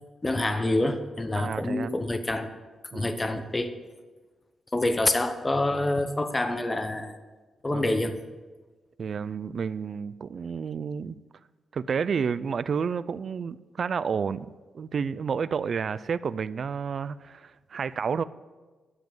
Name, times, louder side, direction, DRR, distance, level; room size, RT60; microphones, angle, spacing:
voice 1, 0.2-2.5 2.9-3.7 4.7-7.2 7.6-8.2, left 2 dB, 20° left, 8 dB, 0.8 m, -27 dB
voice 2, 1.3-1.9 2.9-3.1 7.7-8.0 9.0-11.2 11.7-14.5 14.7-18.2, right 6 dB, 50° right, 16 dB, 0.4 m, -30 dB
12.5 x 7.6 x 7.2 m, 1.3 s
wide cardioid pair, 125°, 0 cm